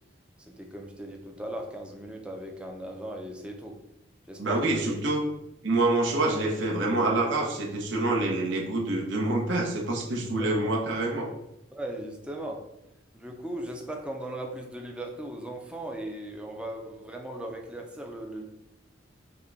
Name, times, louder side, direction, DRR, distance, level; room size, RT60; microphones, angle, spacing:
voice 1, 0.5-3.8 4.3-5.0 10.6-10.7 11.7-12.6 13.1-18.4, right 1 dB, 5° right, 2 dB, 0.5 m, -38 dB
voice 2, 4.4-5.2 5.6-11.3, right 2 dB, 70° right, -1 dB, 0.9 m, -26 dB
5.3 x 2.3 x 3.9 m, 0.87 s
head